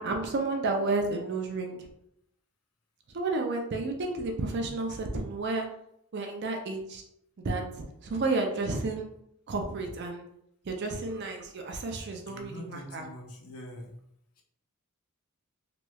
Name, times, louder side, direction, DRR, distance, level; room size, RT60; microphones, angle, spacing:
voice 1, 0.0-1.8 3.1-5.7 6.1-7.0 7.4-9.1 9.5-10.2 10.7-13.0, right 3 dB, 50° right, 3 dB, 0.4 m, -31 dB
voice 2, 12.3-14.0, equal, 85° left, 1 dB, 0.7 m, -44 dB
3.0 x 3.0 x 2.2 m, 0.75 s
head